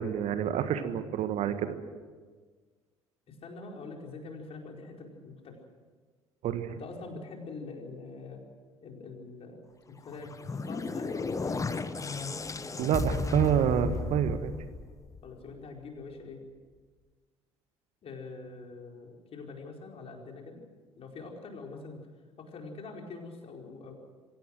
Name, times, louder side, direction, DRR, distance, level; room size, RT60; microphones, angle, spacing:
voice 1, 0.0-1.7 6.4-6.8 12.8-14.5, right 9 dB, 50° right, 10 dB, 1.6 m, -28 dB
voice 2, 3.3-5.6 6.7-8.4 8.8-9.6 9.9-11.6 15.2-16.4 18.0-20.6 21.0-22.0 22.4-23.9, left 3 dB, 45° left, 1 dB, 4.7 m, -44 dB
sound 1, 10.1-15.4, left 4 dB, 20° left, 1.3 m, -34 dB
25.5 x 17.0 x 7.7 m, 1.5 s
figure-of-eight pair, 55°, 14 cm